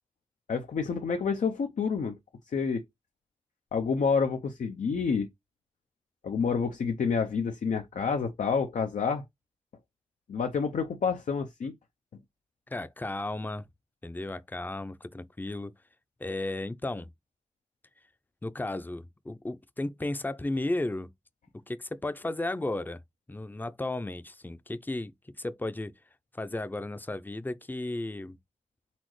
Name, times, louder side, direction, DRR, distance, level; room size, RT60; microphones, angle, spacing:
voice 1, 0.5-2.1 2.5-2.8 3.7-5.3 6.2-9.2 10.3-11.7, left 5 dB, 80° left, 0.6 m, -28 dB
voice 2, 12.7-13.7 14.0-15.7 16.2-17.1 18.4-21.1 21.7-23.0 23.3-25.9 26.3-28.4, left 2 dB, 15° left, 0.5 m, -34 dB
4.2 x 3.8 x 3.1 m
cardioid pair, 50°, 13 cm